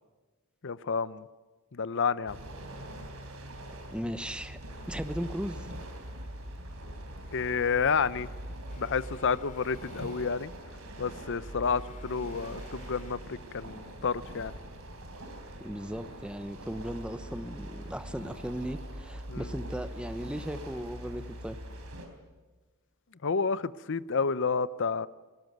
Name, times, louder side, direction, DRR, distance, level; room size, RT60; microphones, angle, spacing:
voice 1, 0.6-1.3 1.7-2.4 7.3-8.3 8.8-10.5 11.0-14.5 19.3-19.5 23.2-25.1, left 5 dB, 55° left, 17 dB, 0.7 m, -30 dB
sound 1, 2.3-22.1, right 1 dB, 65° right, 3.9 m, -43 dB
voice 2, 3.9-4.6 4.9-5.7 15.6-21.6, equal, 5° right, 11 dB, 0.9 m, -37 dB
Alarm, 8.7-10.4 11.6-13.4, right 3 dB, 35° left, 3.4 m, -53 dB
19.5 x 19.5 x 9.3 m, 1.3 s
head